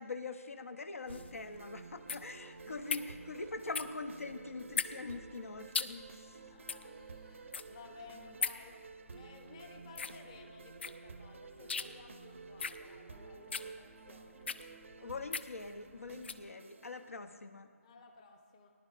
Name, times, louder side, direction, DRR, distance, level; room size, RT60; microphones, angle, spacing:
voice 1, 0.0-6.5 15.0-17.7, left 3 dB, 65° left, 9 dB, 0.8 m, -43 dB
sound 1, 1.1-16.5, left 5 dB, 50° left, 0.5 m, -41 dB
sound 2, 1.1-17.1, right 5 dB, 55° right, 0.6 m, -52 dB
voice 2, 2.5-3.1 6.3-14.5 17.8-18.7, left 4 dB, 20° left, 4 dB, 0.8 m, -56 dB
18.5 x 11.0 x 2.5 m, 2.2 s
figure-of-eight pair, 160°, 8 cm